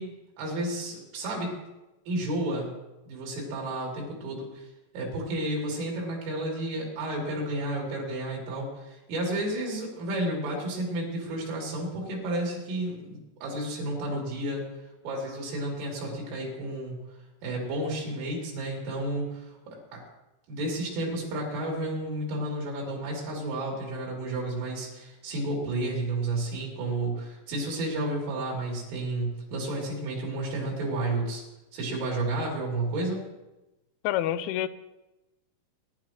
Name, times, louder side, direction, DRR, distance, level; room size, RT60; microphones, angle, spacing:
voice 1, 0.0-1.6 2.1-2.7 3.1-4.7 4.9-14.6 15.0-17.0 17.4-20.0 20.5-31.4 31.7-33.3, right 1 dB, 75° right, -2 dB, 5.9 m, -31 dB
voice 2, 34.0-34.7, left 12 dB, 85° left, 12 dB, 2.9 m, -27 dB
24.5 x 11.5 x 3.2 m, 1.0 s
omnidirectional pair, 5.7 m